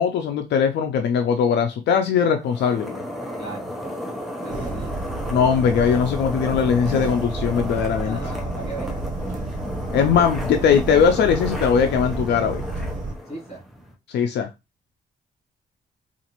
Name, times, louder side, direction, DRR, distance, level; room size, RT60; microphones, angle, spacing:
voice 1, 0.0-3.0 5.3-8.2 9.9-12.6 14.1-14.5, left 7 dB, 90° left, 6 dB, 0.5 m, -20 dB
sound 1, 2.4-13.9, equal, ahead, 0.7 m, -34 dB
voice 2, 3.4-3.8 4.4-5.0 8.0-9.0 13.3-13.6, right 1 dB, 40° left, -1 dB, 2.5 m, -36 dB
sound 2, 4.5-13.2, right 2 dB, 50° right, 0.8 m, -31 dB
3.9 x 2.5 x 2.9 m, 0.24 s
cardioid pair, 110°, 17 cm